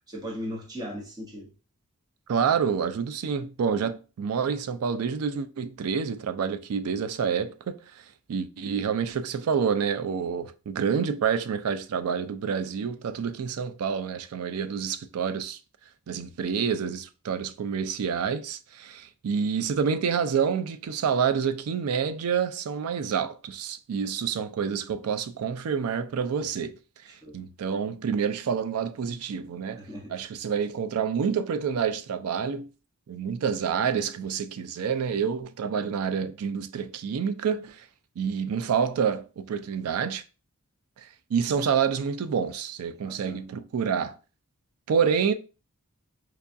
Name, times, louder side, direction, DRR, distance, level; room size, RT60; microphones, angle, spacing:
voice 1, 0.1-1.5 27.1-27.4 29.8-30.1 43.0-43.4, equal, 20° right, 0.8 m, -38 dB
voice 2, 2.3-15.6 16.1-26.8 27.0-29.8 30.1-32.7 33.1-37.9 38.2-40.2 41.0-44.2 44.9-45.3, right 6 dB, 75° right, 0.4 m, -28 dB
4.6 x 2.3 x 2.6 m
head